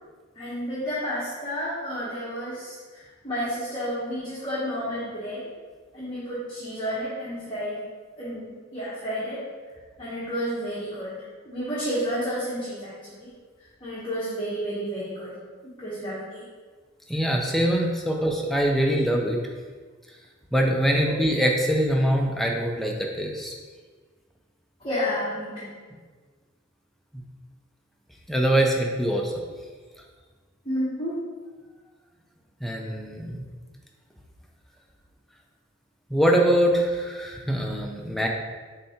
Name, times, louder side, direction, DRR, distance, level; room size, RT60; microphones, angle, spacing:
voice 1, 0.4-5.4 5.9-7.8 8.2-9.4 10.0-13.3 13.8-15.3 15.6-16.4 21.1-21.2 24.8-25.7 30.6-31.2, equal, 25° left, -10 dB, 0.9 m, -31 dB
voice 2, 17.1-19.4 20.5-23.6 27.1-27.2 28.3-29.3 32.6-33.4 36.1-38.3, equal, ahead, 0 dB, 0.4 m, -23 dB
6.6 x 2.7 x 2.8 m, 1.5 s
head